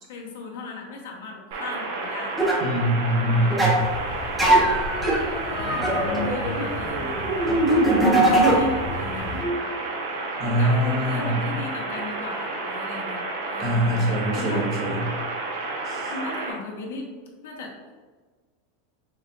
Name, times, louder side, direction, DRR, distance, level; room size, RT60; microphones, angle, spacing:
voice 1, 0.1-2.5 3.2-3.7 4.3-4.7 5.5-7.4 7.7-9.4 10.4-14.0 14.3-14.7 16.1-17.1 17.4-17.7, left 4 dB, 85° left, 0 dB, 0.9 m, -36 dB
sound 1, 1.5-16.5, right 3 dB, 70° right, 0.9 m, -31 dB
sound 2, 2.4-2.6 3.5-3.8 4.4-8.9 9.2-9.5 11.9-12.0, right 1 dB, 5° right, 0.7 m, -22 dB
voice 2, 2.6-3.8 10.4-11.4 13.6-15.0 15.8-16.1, right 1 dB, 35° right, -2 dB, 1.0 m, -24 dB
sound 3, 3.8-9.4, left 3 dB, 40° left, 0.3 m, -35 dB
4.2 x 3.7 x 2.3 m, 1.4 s
supercardioid pair, 160°, 0 cm